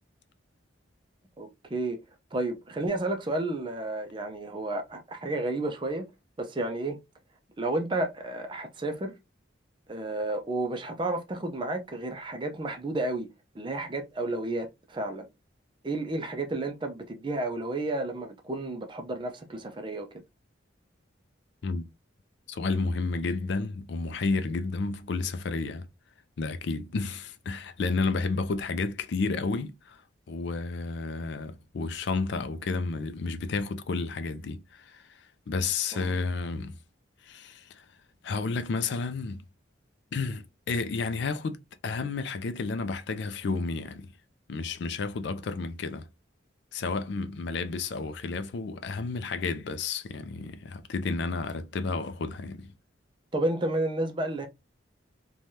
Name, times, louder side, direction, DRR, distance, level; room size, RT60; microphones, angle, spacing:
voice 1, 1.4-2.0 2.3-6.1 6.4-7.0 7.6-9.1 9.9-13.3 13.5-15.3 15.8-20.1 35.9-36.1 53.3-54.5, right 2 dB, 25° right, 0.4 m, -31 dB
voice 2, 22.5-25.9 26.4-30.0 30.3-36.8 37.2-37.8 38.2-39.4 40.1-44.1 44.5-46.1 46.7-52.7, left 4 dB, 65° left, 0.4 m, -31 dB
3.2 x 2.2 x 2.6 m
head